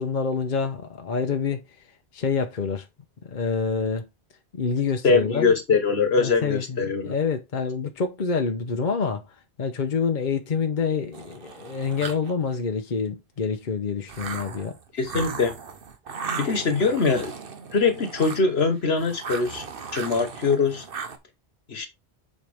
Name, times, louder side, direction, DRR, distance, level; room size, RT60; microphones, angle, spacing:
voice 1, 0.0-1.9 2.1-2.9 3.2-4.1 4.5-5.5 6.2-14.8, left 5 dB, 50° left, 0.9 m, -27 dB
voice 2, 5.0-7.1 14.9-15.5 16.4-17.3 17.7-19.6 19.9-20.8 21.7-21.9, left 4 dB, 70° left, 1.5 m, -22 dB
sound 1, 11.1-12.5 14.1-18.7 19.0-21.2, right 5 dB, 55° right, 1.1 m, -37 dB
7.7 x 4.7 x 3.5 m
omnidirectional pair, 1.1 m